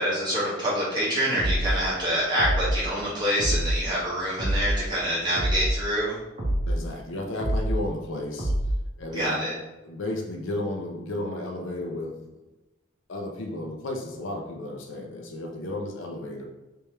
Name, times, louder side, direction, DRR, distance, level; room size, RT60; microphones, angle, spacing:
voice 1, 0.0-6.2 9.1-9.5, equal, 20° right, -9 dB, 1.5 m, -26 dB
sound 1, 1.4-1.8 2.4-2.8 3.4-3.8 4.4-4.8 5.3-5.8 6.4-6.8 7.4-7.8 8.4-8.8, right 1 dB, 40° right, 0.9 m, -25 dB
voice 2, 6.7-8.5 9.0-9.6 9.8-12.2 13.1-16.5, left 1 dB, 70° left, 2 dB, 0.6 m, -33 dB
3.5 x 3.3 x 3.1 m, 1.1 s
head